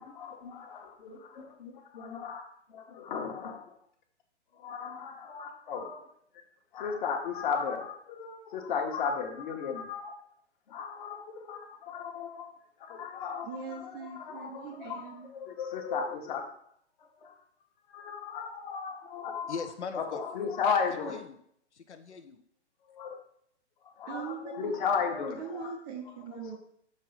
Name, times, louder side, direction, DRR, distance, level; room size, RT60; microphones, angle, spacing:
voice 1, 0.0-1.1 1.6-3.7 4.6-6.0 6.7-10.1 10.7-12.5 12.8-13.5 14.2-15.0 15.3-16.5 17.2-17.3 17.9-19.5 20.0-21.2 22.9-23.2 24.0-25.4 26.4-26.6, left 6 dB, 45° left, 3 dB, 1.3 m, -35 dB
voice 2, 13.4-15.3 24.1-24.8 25.4-26.6, right 6 dB, 20° right, 3 dB, 0.5 m, -41 dB
voice 3, 19.5-20.5 21.1-21.4 21.7-22.4, left 5 dB, 75° left, 8 dB, 0.8 m, -40 dB
6.5 x 3.1 x 5.5 m, 0.68 s
figure-of-eight pair, 125°, 35 cm